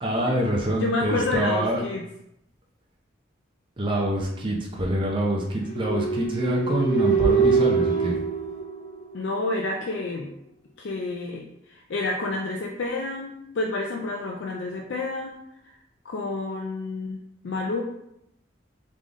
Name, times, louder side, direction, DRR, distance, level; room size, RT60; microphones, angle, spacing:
voice 1, 0.0-1.8 3.8-8.2, right 1 dB, 25° right, -1 dB, 0.6 m, -25 dB
voice 2, 0.8-2.0 9.1-10.3 10.8-15.3 16.1-17.8, left 2 dB, 75° left, 1 dB, 0.5 m, -29 dB
sound 1, 5.6-9.5, right 5 dB, 45° left, 1.4 m, -24 dB
3.7 x 3.6 x 3.6 m, 0.80 s
head